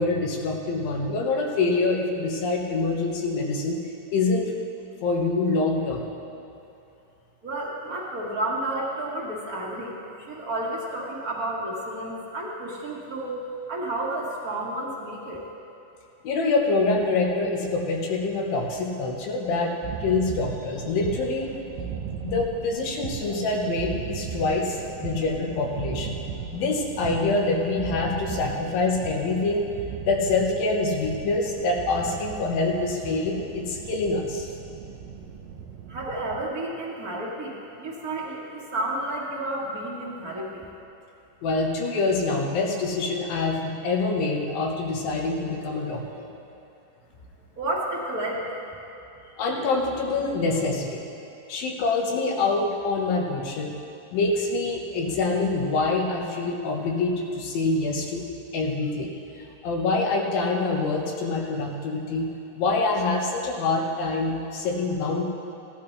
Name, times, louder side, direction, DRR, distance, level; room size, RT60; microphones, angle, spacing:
voice 1, 0.0-3.8 4.1-4.5 5.0-6.0 16.2-21.6 22.2-26.2 26.5-29.7 30.0-34.5 41.4-46.3 49.4-51.0 51.5-53.7 54.1-58.2 58.5-59.2 59.6-65.2, left 3 dB, 85° left, 0 dB, 3.0 m, -25 dB
voice 2, 7.4-13.4 13.7-15.4 35.9-40.7 47.6-48.4, right 1 dB, 40° right, -5 dB, 1.4 m, -31 dB
sound 1, 19.8-36.4, right 7 dB, 85° right, 2.3 m, -37 dB
17.5 x 11.0 x 3.3 m, 2.7 s
omnidirectional pair, 4.0 m